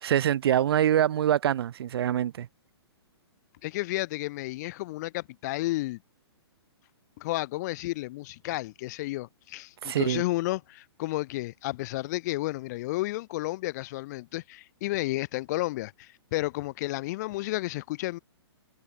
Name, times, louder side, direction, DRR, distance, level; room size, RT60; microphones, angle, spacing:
voice 1, 0.0-2.5 9.8-10.2, right 10 dB, 65° right, 0.9 m, -24 dB
voice 2, 3.6-6.0 7.2-18.2, left 19 dB, 40° left, 1.1 m, -32 dB
hypercardioid pair, 150°, 14 cm